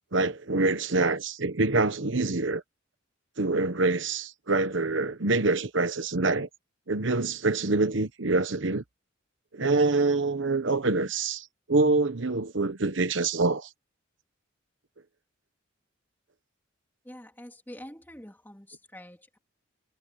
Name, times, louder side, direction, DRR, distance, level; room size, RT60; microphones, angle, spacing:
voice 1, 0.1-2.6 3.4-6.5 6.9-8.8 9.5-13.7, right 3 dB, 65° right, 1.1 m, -25 dB
voice 2, 17.0-19.4, left 1 dB, 10° left, 2.9 m, -46 dB
head